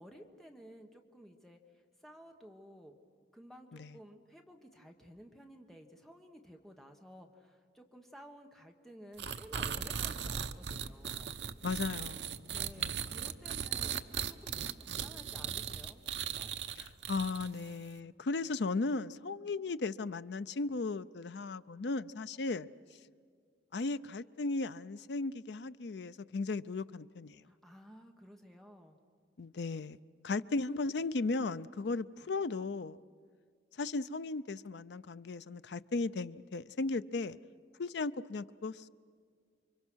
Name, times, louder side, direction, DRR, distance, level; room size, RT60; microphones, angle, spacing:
voice 1, 0.0-1.6 2.0-3.0 3.3-11.3 12.5-13.9 14.3-16.5 27.5-29.0, equal, ahead, 3 dB, 1.3 m, -54 dB
sound 1, 9.2-17.7, right 8 dB, 75° right, 0.8 m, -38 dB
voice 2, 11.6-13.2 16.8-22.7 23.7-27.4 29.4-30.0 30.2-33.0 33.8-37.4 37.8-38.9, left 3 dB, 70° left, 14 dB, 0.5 m, -36 dB
29.0 x 24.5 x 6.3 m, 2.1 s
head